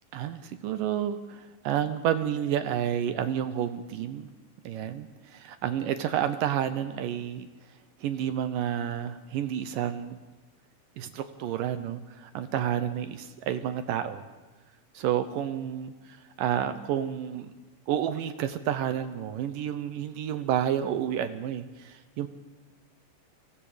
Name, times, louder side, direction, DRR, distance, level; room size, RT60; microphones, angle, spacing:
voice 1, 0.1-4.3 4.6-7.5 8.0-10.2 11.0-14.3 14.9-17.5 17.9-22.3, right 10 dB, 75° right, 11 dB, 2.3 m, -30 dB
27.5 x 24.5 x 5.1 m, 1.2 s
omnidirectional pair, 4.4 m